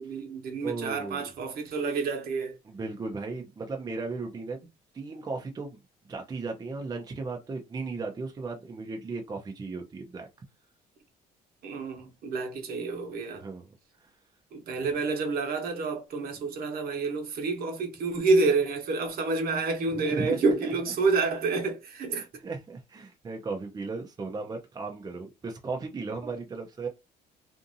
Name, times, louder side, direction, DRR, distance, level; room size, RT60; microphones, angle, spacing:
voice 1, 0.0-2.6 11.6-13.4 14.5-22.3, right 3 dB, 60° right, 1.1 m, -28 dB
voice 2, 0.6-1.3 2.6-4.6 4.9-5.8 6.0-10.3 13.3-13.6 20.0-20.7 22.1-26.9, right 4 dB, 25° right, 0.6 m, -36 dB
2.6 x 2.6 x 2.6 m
cardioid pair, 110°, 17 cm